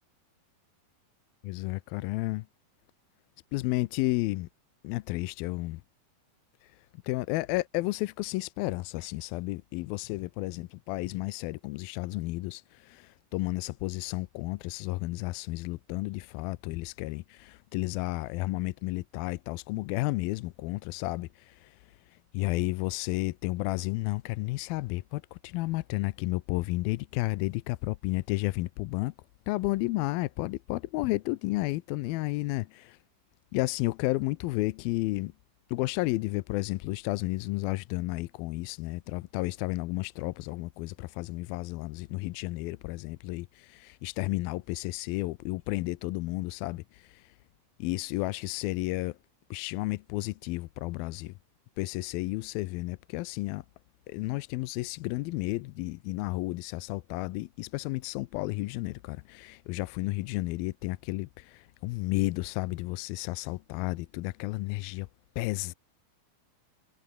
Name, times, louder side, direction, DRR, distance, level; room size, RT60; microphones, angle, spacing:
voice 1, 1.4-2.5 3.5-4.5 4.8-5.8 7.0-21.8 22.3-29.1 29.5-33.0 33.5-35.3 35.7-47.3 47.8-49.2 49.5-51.3 51.8-53.6 54.1-65.1 65.4-65.7, left 20 dB, 80° left, 2.4 m, -32 dB
omnidirectional pair, 4.4 m